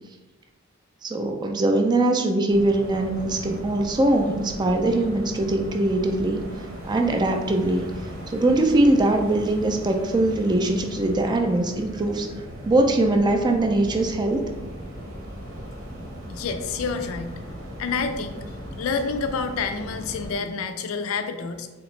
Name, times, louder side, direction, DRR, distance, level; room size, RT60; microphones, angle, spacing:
voice 1, 1.0-6.4 6.9-7.9 8.3-12.3 12.7-14.4, right 2 dB, 20° right, 4 dB, 0.3 m, -22 dB
sound 1, 2.5-20.4, equal, 85° right, 1.0 m, -38 dB
voice 2, 16.3-17.4 17.8-18.4 18.8-21.7, left 5 dB, 90° left, 8 dB, 0.4 m, -28 dB
3.4 x 2.9 x 3.1 m, 1.2 s
head